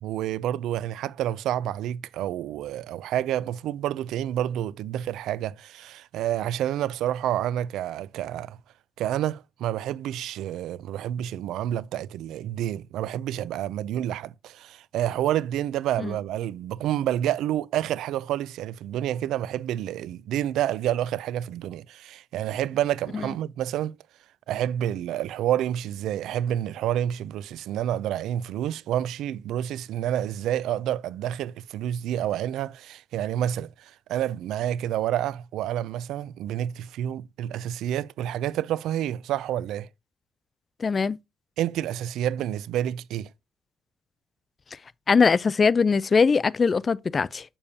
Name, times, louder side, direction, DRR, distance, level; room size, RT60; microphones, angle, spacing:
voice 1, 0.0-8.6 9.0-24.0 24.5-39.9 41.6-43.3, right 11 dB, 85° right, 0.3 m, -29 dB
voice 2, 40.8-41.2 45.1-47.4, left 5 dB, 35° left, 0.3 m, -21 dB
6.9 x 6.8 x 2.8 m
cardioid pair, 90°, 0 cm